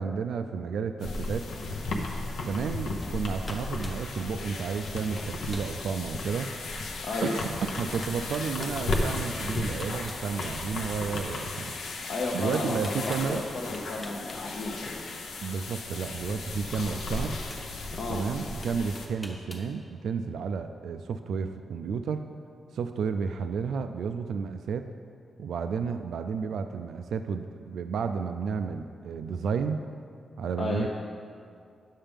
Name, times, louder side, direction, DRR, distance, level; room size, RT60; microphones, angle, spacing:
voice 1, 0.0-1.5 2.4-6.5 7.2-11.8 12.3-13.4 15.4-17.4 18.1-22.3 22.7-24.9 25.4-29.8 30.4-30.9, right 6 dB, 80° right, 8 dB, 0.3 m, -32 dB
sound 1, 1.0-19.1, left 2 dB, 85° left, 0.8 m, -35 dB
sound 2, 3.0-3.2 3.4-4.0 4.8-4.9 5.2-5.7 6.3-6.4 7.5-7.6 8.0-8.8 9.5-11.2 12.5-13.3 13.7-14.4 14.7-14.9 16.3-16.4 16.9-17.7 18.6-19.7, equal, 5° left, 0.8 m, -44 dB
voice 2, 7.0-7.4 12.1-15.0 18.0-18.2 30.6-30.9, left 2 dB, 55° left, -2 dB, 0.6 m, -33 dB
9.6 x 7.3 x 3.5 m, 2.4 s
wide cardioid pair, 165°, 0 cm